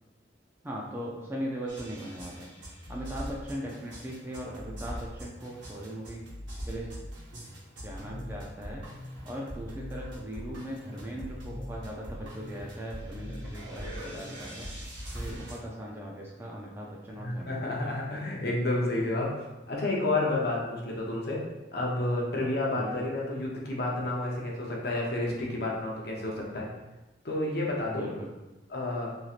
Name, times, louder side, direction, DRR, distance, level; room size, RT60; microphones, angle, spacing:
voice 1, 0.6-2.5 2.9-6.2 6.7-6.9 7.8-8.8 9.2-14.7 15.1-17.8 22.7-23.0 27.9-28.3, equal, 10° right, -3 dB, 0.3 m, -39 dB
sound 1, 1.7-15.6, equal, 75° right, 0.9 m, -41 dB
voice 2, 17.2-21.5 21.7-26.7 27.2-28.1 28.7-29.1, left 2 dB, 55° left, -2 dB, 0.6 m, -30 dB
3.1 x 2.7 x 2.4 m, 1.1 s
head